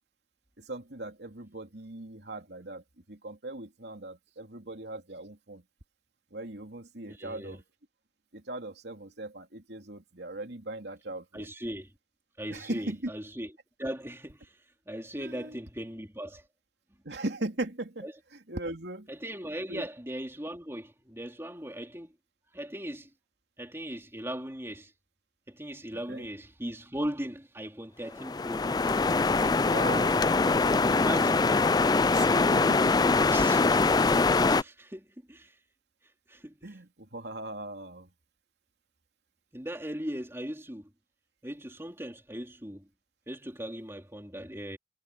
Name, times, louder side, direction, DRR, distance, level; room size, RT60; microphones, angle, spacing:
voice 1, 0.6-5.6 6.3-7.6 8.3-11.5 12.5-13.1 15.2-15.6 17.0-19.1 19.7-19.9 25.9-26.3 29.6-30.2 32.1-33.0 36.6-38.1, right 2 dB, 65° right, 3.0 m, -39 dB
voice 2, 7.1-7.6 11.3-11.9 12.4-13.5 13.8-14.5 14.9-16.4 18.0-18.1 19.1-22.1 22.5-23.1 23.6-24.9 25.5-28.9 30.9-31.5 33.3-35.5 36.3-36.6 39.5-40.9 41.4-42.8 43.3-44.8, equal, 15° right, 3.4 m, -38 dB
sound 1, 28.2-34.6, left 3 dB, 20° left, 0.4 m, -23 dB
head